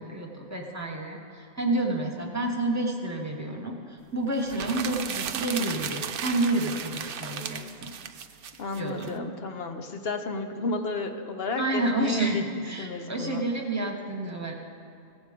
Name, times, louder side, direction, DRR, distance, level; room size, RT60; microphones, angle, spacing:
voice 1, 0.0-7.9 8.8-9.1 11.6-14.5, right 2 dB, 15° right, 0 dB, 1.1 m, -29 dB
sound 1, 4.4-9.1, right 8 dB, 60° right, 0.6 m, -35 dB
voice 2, 8.6-12.4 12.8-13.4, left 3 dB, 55° left, 6 dB, 0.9 m, -32 dB
16.5 x 7.2 x 5.1 m, 2.7 s
omnidirectional pair, 1.4 m